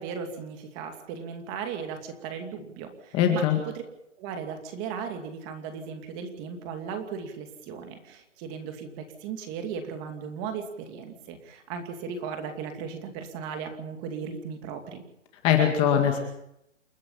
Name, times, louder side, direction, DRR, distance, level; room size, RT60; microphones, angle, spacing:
voice 1, 0.0-3.4 4.2-15.0, right 6 dB, 20° right, 6 dB, 2.6 m, -37 dB
voice 2, 3.1-3.6 15.4-16.2, left 9 dB, 15° left, 4 dB, 2.1 m, -21 dB
29.0 x 10.0 x 9.9 m, 0.80 s
hypercardioid pair, 170°, 37 cm